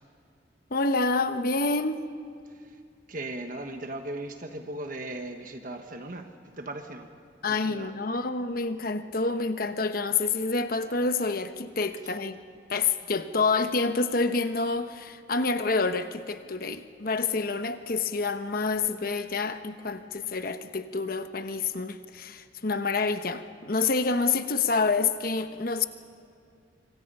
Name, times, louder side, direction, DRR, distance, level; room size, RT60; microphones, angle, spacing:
voice 1, 0.7-2.0 7.4-12.4 12.7-25.9, left 4 dB, 55° left, 9 dB, 1.1 m, -28 dB
voice 2, 3.1-7.1 7.5-7.9, right 2 dB, 50° right, 5 dB, 1.3 m, -38 dB
25.5 x 25.5 x 5.5 m, 2.4 s
head